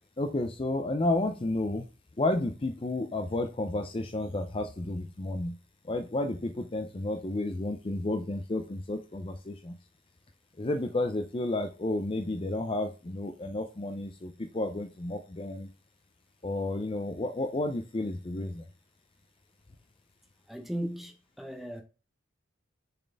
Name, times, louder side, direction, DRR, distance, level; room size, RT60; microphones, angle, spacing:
voice 1, 0.2-1.8 2.2-5.5 5.9-9.7 10.6-15.7 16.4-18.6, left 2 dB, 25° left, 0.5 m, -31 dB
voice 2, 20.5-21.8, equal, ahead, 0.8 m, -37 dB
6.7 x 4.2 x 3.4 m
head